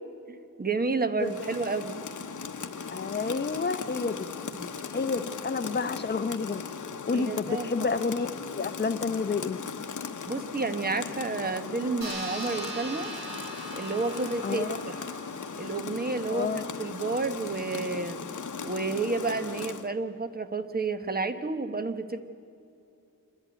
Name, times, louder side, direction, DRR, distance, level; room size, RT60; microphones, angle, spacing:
voice 1, 0.6-2.0 4.5-4.7 7.1-7.7 10.3-13.1 13.7-15.0 15.6-18.2 18.6-22.2, right 3 dB, 25° right, 9 dB, 1.1 m, -30 dB
Rain, 1.2-19.9, left 5 dB, 60° left, 1.0 m, -38 dB
voice 2, 2.9-4.3 4.9-6.6 7.1-9.6 14.4-14.8 16.3-16.7, left 4 dB, 30° left, 10 dB, 0.8 m, -30 dB
sound 1, 12.0-16.9, right 2 dB, 90° right, 4.7 m, -41 dB
28.0 x 11.0 x 9.2 m, 2.7 s
wide cardioid pair, 130°, 34 cm